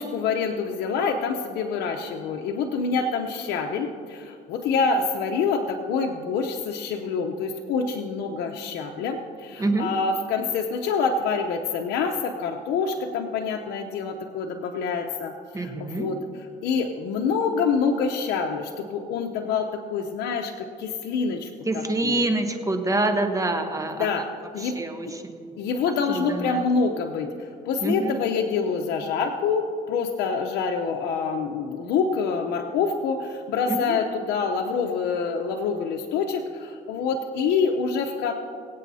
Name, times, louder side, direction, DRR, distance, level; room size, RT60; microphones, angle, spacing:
voice 1, 0.0-16.2 16.6-22.2 24.0-24.3 24.5-24.8 25.6-38.3, left 5 dB, 80° left, 3 dB, 0.8 m, -26 dB
voice 2, 9.6-9.9 15.5-16.1 21.6-24.2 24.6-25.6 26.1-26.6 27.8-28.2 33.7-34.0, right 2 dB, 20° right, 6 dB, 1.0 m, -26 dB
23.5 x 8.4 x 2.8 m, 2.3 s
cardioid pair, 110°, 17 cm